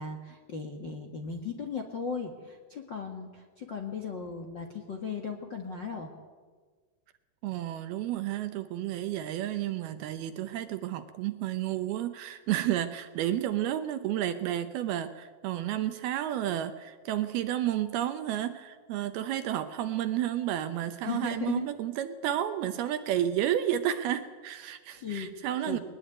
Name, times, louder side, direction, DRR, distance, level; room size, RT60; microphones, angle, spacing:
voice 1, 0.0-6.1 21.0-21.7 24.9-25.3 25.7-25.8, left 6 dB, 80° left, 2 dB, 1.0 m, -37 dB
voice 2, 7.4-25.8, right 12 dB, 75° right, 10 dB, 2.5 m, -31 dB
21.5 x 20.0 x 9.1 m, 1.4 s
omnidirectional pair, 5.1 m